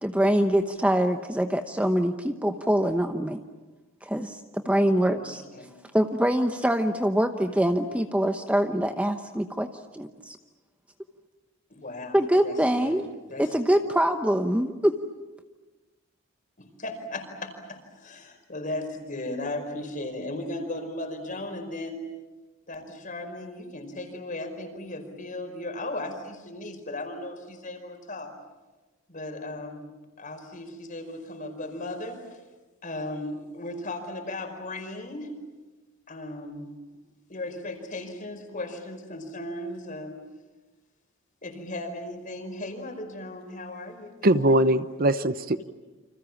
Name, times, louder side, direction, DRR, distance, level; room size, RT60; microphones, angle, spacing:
voice 1, 0.0-3.4 4.0-5.4 5.9-9.7 9.9-10.4 12.1-13.0 13.4-15.0, equal, 5° right, 6 dB, 0.9 m, -24 dB
voice 2, 5.1-5.7 11.7-13.5 16.6-22.0 22.7-28.3 29.1-29.9 30.2-32.4 32.8-35.4 36.1-36.7 37.3-40.2 41.4-44.1, left 2 dB, 40° left, 5 dB, 5.1 m, -36 dB
voice 3, 44.2-45.6, right 1 dB, 45° right, 12 dB, 0.9 m, -21 dB
29.0 x 26.5 x 7.3 m, 1.2 s
head